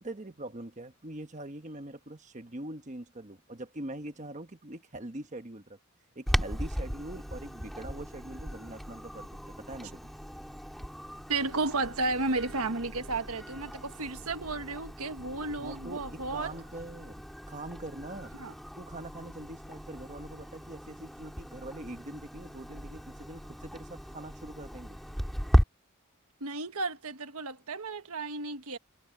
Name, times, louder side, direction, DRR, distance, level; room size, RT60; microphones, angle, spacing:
voice 1, 0.0-5.8 6.1-10.1 15.6-17.2 17.5-18.3 18.8-25.0, right 1 dB, 35° right, 1.3 m, -43 dB
Clock, 6.3-25.6, equal, ahead, 2.3 m, -36 dB
voice 2, 11.3-16.5 18.4-18.5 26.4-28.8, right 3 dB, 75° right, 1.4 m, -33 dB
head